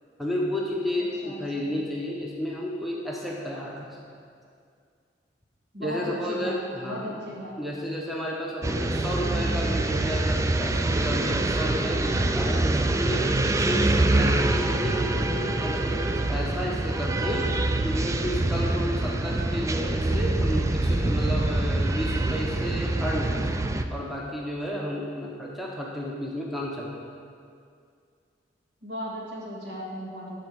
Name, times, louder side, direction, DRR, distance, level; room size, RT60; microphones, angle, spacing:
voice 1, 0.2-3.9 5.8-7.2 7.6-13.3 13.5-17.5 17.8-26.9, equal, ahead, -3 dB, 0.8 m, -32 dB
voice 2, 1.2-1.8 5.7-6.6 6.8-7.6 28.8-30.4, equal, 65° right, -5 dB, 2.3 m, -36 dB
sound 1, 8.6-23.8, right 2 dB, 15° right, 0.3 m, -25 dB
11.0 x 4.4 x 6.9 m, 2.3 s
head